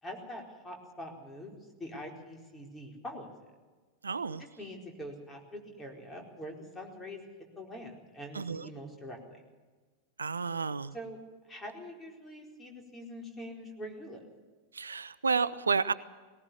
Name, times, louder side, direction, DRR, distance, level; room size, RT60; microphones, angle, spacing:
voice 1, 0.0-3.5 4.4-7.2 7.6-9.4 10.9-11.2 11.5-14.3, equal, 15° left, 1 dB, 4.4 m, -44 dB
voice 2, 4.0-4.4 8.3-8.7 10.2-10.9 14.7-15.9, right 5 dB, 75° right, 17 dB, 0.6 m, -31 dB
19.5 x 18.5 x 7.2 m, 1.3 s
figure-of-eight pair, 90°, 0 cm